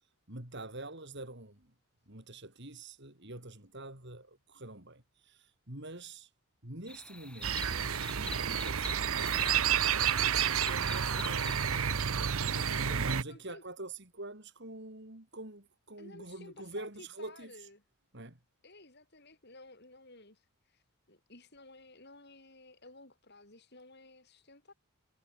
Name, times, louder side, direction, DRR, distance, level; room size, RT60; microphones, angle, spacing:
voice 1, 0.3-1.7 2.1-6.3 6.6-11.6 12.5-17.7 18.1-18.4, right 2 dB, 50° right, 4.4 m, -46 dB
sound 1, 6.9-11.8, left 1 dB, 5° left, 3.7 m, -45 dB
sound 2, 7.4-13.2, right 8 dB, 70° right, 0.9 m, -30 dB
voice 2, 11.0-11.9 12.5-13.6 16.0-17.8 18.6-24.7, left 2 dB, 45° left, 6.7 m, -54 dB
head